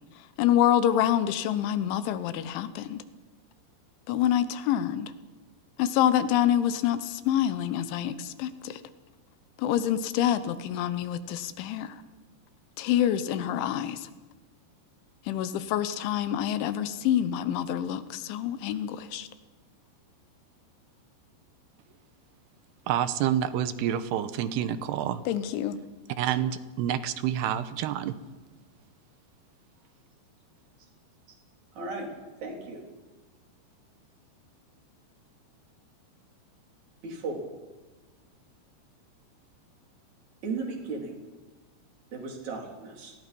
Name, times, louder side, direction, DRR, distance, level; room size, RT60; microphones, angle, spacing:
voice 1, 0.4-3.0 4.1-5.1 5.8-8.8 9.6-12.0 12.8-14.1 15.3-19.3 25.3-25.8, left 11 dB, 90° left, 3.4 m, -26 dB
voice 2, 22.9-25.2 26.2-28.2, right 10 dB, 75° right, 2.8 m, -28 dB
voice 3, 31.7-32.1 32.4-32.8 37.0-37.4 40.4-41.1 42.1-43.1, right 3 dB, 40° right, 4.8 m, -35 dB
29.5 x 21.0 x 5.4 m
omnidirectional pair, 5.2 m